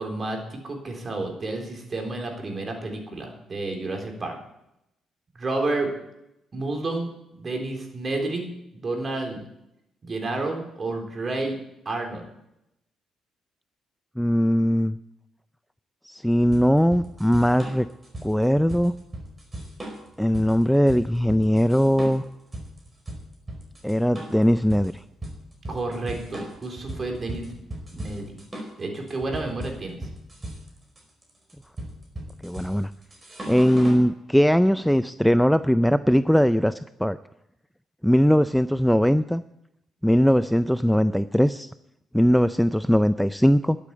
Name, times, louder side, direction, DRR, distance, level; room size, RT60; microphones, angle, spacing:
voice 1, 0.0-4.4 5.4-5.9 6.5-8.5 8.7-9.4 10.0-11.5 11.9-12.3 25.7-27.6 27.9-28.3 28.8-30.0, right 2 dB, 35° right, 2 dB, 3.9 m, -30 dB
voice 2, 14.2-15.0 16.0-17.9 18.2-18.9 20.2-22.2 23.8-24.9 32.4-32.9 33.5-37.2 38.0-39.4 40.0-41.7 42.1-43.8, equal, ahead, 13 dB, 0.4 m, -20 dB
sound 1, 16.5-34.1, right 1 dB, 20° right, 4.7 m, -37 dB
12.0 x 8.4 x 8.5 m, 0.82 s
cardioid pair, 90°, 0 cm